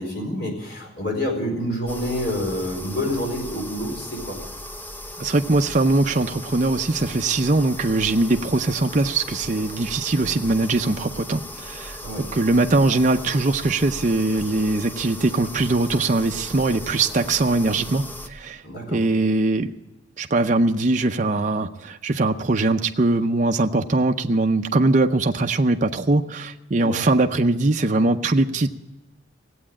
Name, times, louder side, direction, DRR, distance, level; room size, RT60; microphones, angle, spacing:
voice 1, 0.0-4.4 12.0-12.2 18.6-19.0 26.7-27.1, left 1 dB, 55° left, 1 dB, 4.5 m, -28 dB
sound 1, 1.9-18.3, left 1 dB, 10° left, 0.6 m, -37 dB
voice 2, 5.2-12.0 12.3-18.6 18.9-19.7 20.2-28.7, right 2 dB, 40° right, 5 dB, 0.6 m, -21 dB
17.0 x 8.6 x 8.6 m, 1.1 s
head